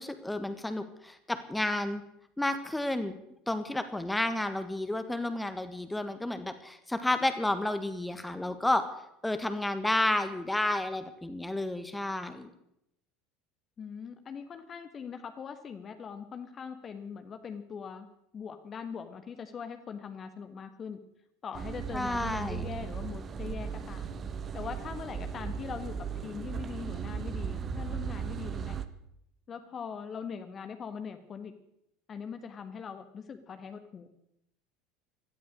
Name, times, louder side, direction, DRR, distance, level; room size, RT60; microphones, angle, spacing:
voice 1, 0.0-2.0 2.4-3.1 3.5-8.9 9.2-12.5 21.9-22.7, left 1 dB, 5° left, 10 dB, 1.6 m, -31 dB
voice 2, 13.8-18.1 18.3-21.0 21.4-24.1 24.5-28.8 29.5-31.5 32.1-34.1, left 6 dB, 30° left, 8 dB, 1.4 m, -41 dB
sound 1, 21.5-28.9, right 7 dB, 30° right, 1.1 m, -37 dB
17.5 x 12.5 x 6.6 m, 0.78 s
figure-of-eight pair, 70°, 0 cm